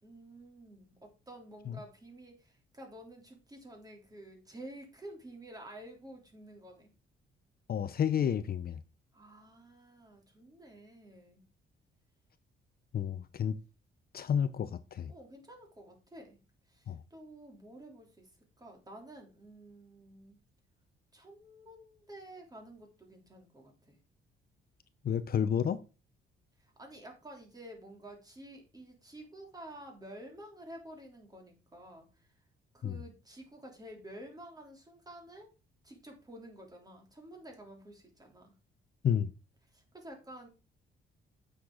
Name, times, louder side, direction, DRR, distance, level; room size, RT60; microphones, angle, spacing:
voice 1, 0.0-6.9 9.1-11.4 15.1-16.4 16.7-18.3 18.6-20.4 21.1-24.0 26.6-32.3 32.7-35.5 35.8-38.5 39.7-40.5, right 1 dB, 20° right, 3.3 m, -51 dB
voice 2, 7.7-8.8 12.9-13.6 14.1-15.1 16.9-17.0 25.0-25.8 32.8-33.0 39.0-39.3, left 8 dB, 50° left, 0.7 m, -30 dB
8.6 x 6.6 x 3.9 m
cardioid pair, 90°, 20 cm